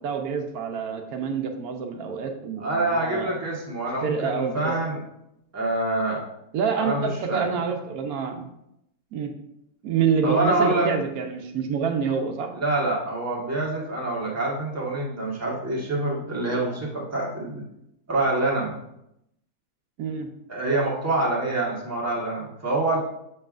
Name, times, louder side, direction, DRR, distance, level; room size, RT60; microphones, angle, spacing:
voice 1, 0.0-3.4 4.0-4.8 6.5-8.5 9.1-9.3 9.8-12.5 20.0-20.3, right 6 dB, 80° right, 4 dB, 1.1 m, -27 dB
voice 2, 2.6-5.0 5.5-6.2 6.8-7.4 10.2-10.9 12.6-17.6 18.1-18.7 20.5-23.0, right 2 dB, 10° right, -4 dB, 1.2 m, -26 dB
7.0 x 5.4 x 2.5 m, 0.82 s
omnidirectional pair, 1.6 m